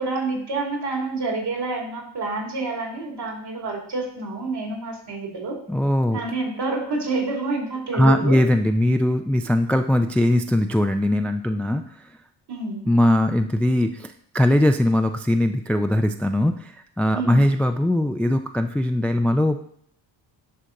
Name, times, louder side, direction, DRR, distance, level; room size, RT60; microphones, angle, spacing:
voice 1, 0.0-5.6 6.1-8.4 12.5-12.8 17.1-17.4, right 3 dB, 55° right, 0 dB, 2.6 m, -28 dB
voice 2, 5.7-6.2 7.9-11.8 12.9-19.6, left 1 dB, 5° left, 7 dB, 0.3 m, -20 dB
11.0 x 4.0 x 3.7 m, 0.65 s
cardioid pair, 65°, 47 cm